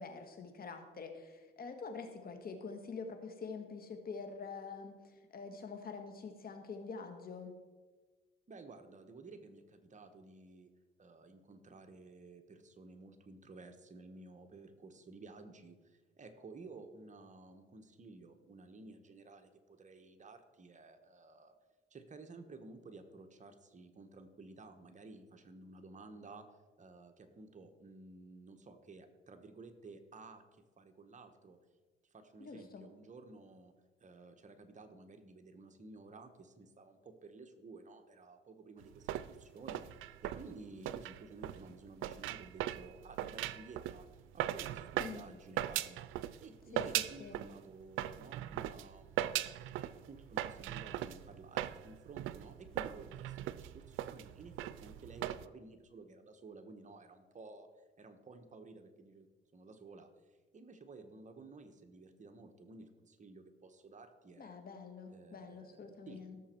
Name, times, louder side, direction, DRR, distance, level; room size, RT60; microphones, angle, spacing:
voice 1, 0.0-7.5 32.4-32.8 45.0-45.2 46.7-46.8 47.2-47.4 64.4-66.4, left 4 dB, 50° left, 6 dB, 1.8 m, -46 dB
voice 2, 8.5-10.7 11.0-21.6 21.9-26.5 26.8-31.6 32.1-33.7 34.0-46.1 46.4-49.7 50.1-59.3 59.5-64.6 65.1-66.4, right 3 dB, 40° right, 7 dB, 1.3 m, -54 dB
sound 1, 38.8-46.4 46.8-47.6 47.9-55.4, right 13 dB, 90° right, 0.5 m, -39 dB
17.0 x 7.2 x 4.5 m, 1.3 s
cardioid pair, 90°, 20 cm